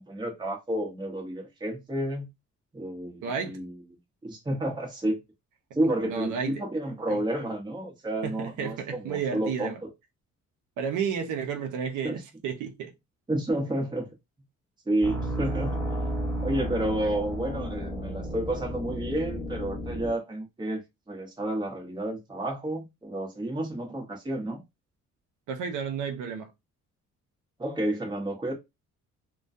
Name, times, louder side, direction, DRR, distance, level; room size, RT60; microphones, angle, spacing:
voice 1, 0.0-2.3 2.7-3.7 4.2-5.2 5.7-9.9 12.0-12.2 13.3-14.1 14.9-15.9 16.4-20.8 21.1-24.6 27.6-28.5, right 1 dB, 15° right, 0.8 m, -30 dB
voice 2, 3.2-3.6 6.1-6.6 7.1-7.2 8.2-9.8 10.8-12.9 25.5-26.5, right 7 dB, 80° right, 0.5 m, -32 dB
sound 1, 15.0-20.1, equal, 5° left, 1.1 m, -32 dB
2.2 x 2.2 x 2.5 m
cardioid pair, 90°, 30 cm